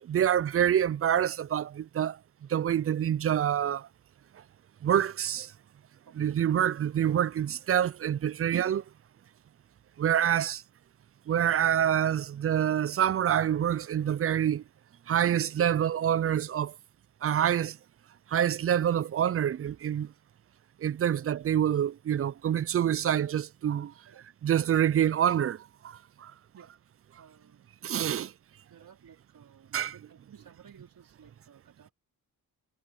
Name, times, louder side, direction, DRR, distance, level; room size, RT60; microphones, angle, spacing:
voice 1, 0.0-2.2 2.5-3.9 4.8-5.5 6.2-8.8 10.0-10.6 11.3-14.6 15.1-16.7 17.2-17.8 18.3-20.1 20.8-23.9 24.4-26.3 27.8-28.3 29.7-29.9, right 9 dB, 35° right, 0.4 m, -26 dB
voice 2, 26.5-27.7 28.1-28.3 28.7-31.9, right 8 dB, 60° right, 3.2 m, -56 dB
cardioid pair, 100°, 39 cm